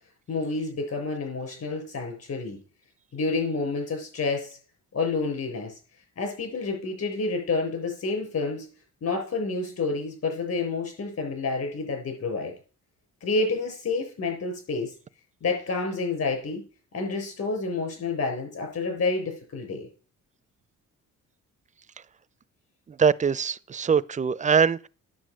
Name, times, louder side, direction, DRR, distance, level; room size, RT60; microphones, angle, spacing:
voice 1, 0.3-2.6 3.1-4.6 4.9-5.7 6.2-8.7 9.0-12.5 13.2-14.9 15.4-16.6 16.9-19.9, left 3 dB, 55° left, 6.8 m, -29 dB
voice 2, 23.0-24.9, right 6 dB, 25° right, 0.5 m, -22 dB
9.6 x 7.6 x 6.3 m
cardioid pair, 90°, 30 cm